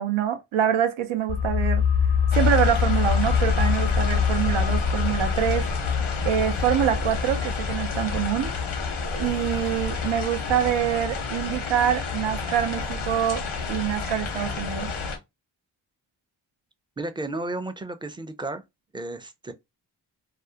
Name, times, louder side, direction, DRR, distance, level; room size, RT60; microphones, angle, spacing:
voice 1, 0.0-1.8 2.3-5.7 6.2-8.7 9.2-13.4 13.7-14.9, right 10 dB, 90° right, 0.6 m, -25 dB
sound 1, 1.3-12.7 12.9-13.0, left 7 dB, 60° left, 0.5 m, -26 dB
sound 2, 2.3-15.2, left 4 dB, 85° left, 0.8 m, -31 dB
voice 2, 17.0-18.6 18.9-19.5, right 2 dB, 10° right, 0.3 m, -33 dB
2.4 x 2.0 x 2.6 m
cardioid pair, 45°, 46 cm